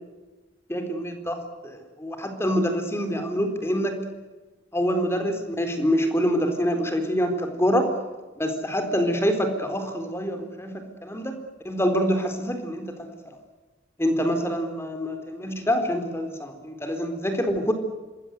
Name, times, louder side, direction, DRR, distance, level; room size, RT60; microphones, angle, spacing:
voice 1, 0.7-1.4 1.6-4.0 4.7-7.9 8.4-11.4 11.6-13.1 14.0-17.7, equal, 15° left, 6 dB, 4.0 m, -26 dB
26.5 x 21.0 x 8.2 m, 1.2 s
head